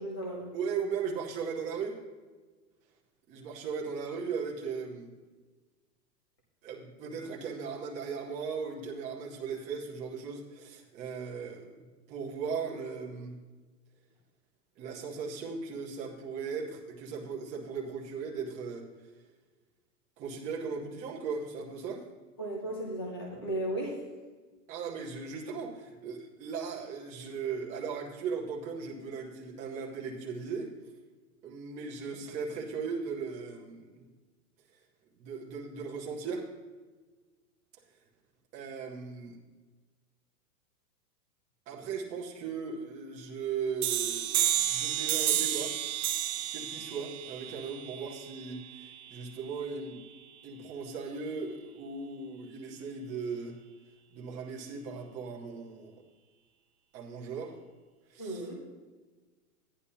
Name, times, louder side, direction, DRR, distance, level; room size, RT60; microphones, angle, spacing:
voice 1, 0.0-0.5 22.4-24.0 58.2-58.6, right 1 dB, 15° left, -1 dB, 0.4 m, -35 dB
voice 2, 0.5-2.0 3.3-5.1 6.6-11.7 12.1-13.4 14.8-18.8 20.2-22.0 24.7-30.7 31.4-34.0 35.2-36.5 38.5-39.4 41.7-44.3 44.6-45.8 46.5-50.0 50.4-53.6 54.1-55.9 56.9-57.6 58.1-58.5, right 5 dB, 15° right, -3 dB, 1.0 m, -37 dB
sound 1, 43.8-49.2, right 11 dB, 60° right, 1.2 m, -31 dB
14.0 x 10.0 x 2.8 m, 1.3 s
supercardioid pair, 170°, 49 cm